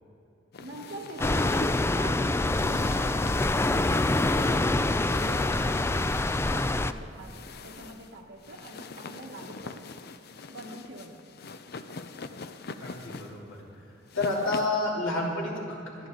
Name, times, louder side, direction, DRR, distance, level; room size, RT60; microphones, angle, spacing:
sound 1, 0.5-14.9, left 4 dB, 55° left, 0.6 m, -43 dB
voice 1, 0.6-1.7 1.9-3.3 3.7-6.0 6.4-9.9 10.5-11.3, right 1 dB, 85° right, -4 dB, 1.5 m, -44 dB
sound 2, 1.2-6.9, left 2 dB, 15° left, 0.3 m, -25 dB
voice 2, 12.8-13.6 14.1-16.1, left 2 dB, 85° left, -3 dB, 3.2 m, -30 dB
26.0 x 9.8 x 3.9 m, 2.9 s
head